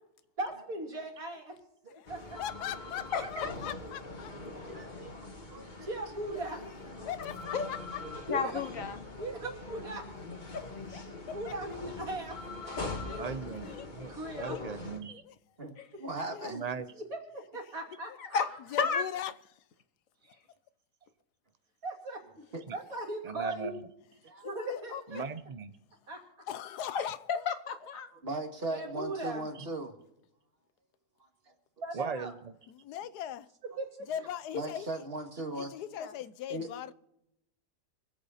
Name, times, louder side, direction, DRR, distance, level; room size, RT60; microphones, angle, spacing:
voice 1, 0.4-1.6 2.1-2.4 5.8-6.6 8.3-8.6 9.2-10.0 11.3-13.3 13.9-14.6 17.0-18.6 21.8-22.2 22.7-23.7 24.4-25.2 26.1-26.2 28.7-29.4 31.8-32.3 33.8-34.1, right 2 dB, 60° right, 3.5 m, -39 dB
sound 1, 2.1-15.0, left 2 dB, 30° left, 1.7 m, -43 dB
voice 2, 2.4-4.3 7.0-8.2 11.3-11.5 15.2-15.4 16.3-16.5 18.7-19.6 24.2-25.2 26.5-27.5 32.7-33.5 34.1-35.0 35.6-36.9, left 10 dB, 80° left, 1.2 m, -40 dB
voice 3, 3.1-3.8 7.5-7.7 8.3-9.0 10.5-11.0 13.1-13.2 13.7-13.9 14.4-14.6 15.1-15.2 15.8-15.9 18.2-18.5 18.8-19.0 26.9-27.1 27.5-28.1 36.0-36.1, left 5 dB, 60° left, 1.3 m, -33 dB
voice 4, 4.7-5.9 15.6-15.7 16.0-16.7 22.5-22.6 24.2-24.5 28.2-29.9 31.2-31.3 34.5-35.7 36.5-36.7, right 2 dB, 35° right, 2.0 m, -38 dB
voice 5, 13.2-15.2 16.5-16.9 22.7-22.8 23.2-23.9 25.1-25.7 29.6-29.7 31.9-32.5, right 5 dB, 85° right, 0.3 m, -38 dB
25.0 x 8.3 x 4.2 m
omnidirectional pair, 1.7 m